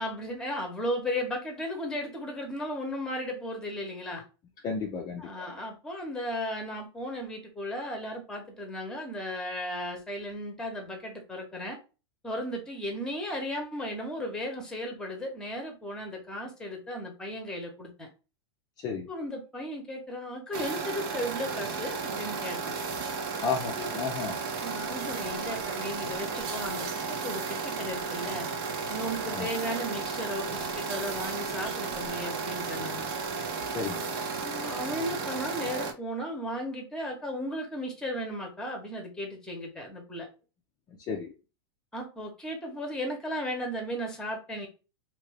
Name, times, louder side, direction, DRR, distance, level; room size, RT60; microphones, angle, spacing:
voice 1, 0.0-4.2 5.2-11.8 12.2-18.1 19.1-22.8 23.8-24.4 24.6-28.5 28.9-33.0 34.4-40.3 41.9-44.7, equal, 5° left, 1.0 m, -35 dB
voice 2, 4.6-5.3 18.8-19.1 23.4-24.3 29.3-29.5 33.7-34.1 41.1-41.3, left 5 dB, 25° left, 0.5 m, -32 dB
sound 1, 20.5-35.9, right 4 dB, 55° right, 0.8 m, -34 dB
2.9 x 2.6 x 3.2 m
supercardioid pair, 145°, 14 cm